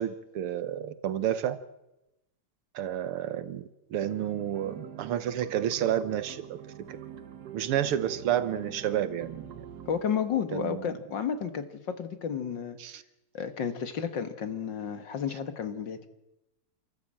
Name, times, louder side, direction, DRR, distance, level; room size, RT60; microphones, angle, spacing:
voice 1, 0.0-1.6 2.7-6.6 7.5-9.7 10.5-11.0 12.8-13.0, right 10 dB, 85° right, 14 dB, 2.1 m, -30 dB
sound 1, 4.0-10.0, right 9 dB, 55° right, 1.5 m, -44 dB
voice 2, 9.9-12.8 13.3-16.1, left 7 dB, 60° left, 10 dB, 2.2 m, -32 dB
27.5 x 14.0 x 8.9 m, 0.91 s
omnidirectional pair, 2.4 m